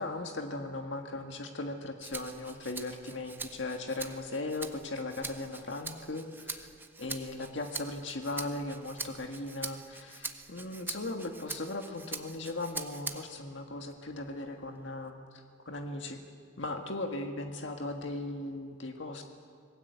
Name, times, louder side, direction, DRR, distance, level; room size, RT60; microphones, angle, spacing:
voice 1, 0.0-6.7 7.0-16.2 16.6-19.2, left 2 dB, 80° left, 4 dB, 1.7 m, -38 dB
Rattle (instrument), 2.0-13.5 13.9-15.1, right 3 dB, 10° right, 1.0 m, -43 dB
26.5 x 19.5 x 8.1 m, 2.3 s
head